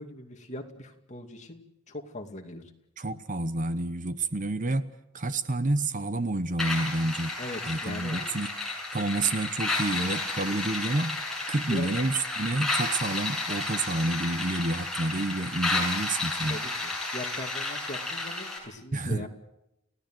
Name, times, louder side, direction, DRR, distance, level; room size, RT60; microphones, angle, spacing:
voice 1, 0.0-1.6 1.9-2.6 7.4-8.2 11.7-11.9 16.5-19.3, left 1 dB, 35° left, 3 dB, 2.5 m, -40 dB
voice 2, 3.0-7.3 7.7-8.5 8.9-11.2 11.5-16.6 18.9-19.3, right 2 dB, 40° right, 12 dB, 1.0 m, -29 dB
sound 1, 6.6-18.6, left 2 dB, ahead, 6.9 m, -32 dB
30.0 x 16.5 x 7.8 m, 0.87 s
head